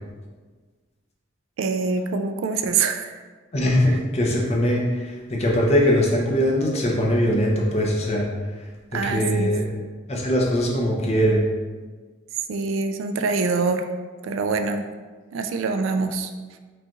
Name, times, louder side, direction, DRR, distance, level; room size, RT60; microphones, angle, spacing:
voice 1, 1.6-3.1 8.9-9.5 12.5-13.9 14.2-14.9 15.3-16.3, right 4 dB, 85° right, 7 dB, 0.3 m, -24 dB
voice 2, 3.5-8.3 8.9-9.6 10.1-11.4, equal, 35° left, -3 dB, 0.7 m, -21 dB
4.8 x 2.4 x 3.0 m, 1.4 s
head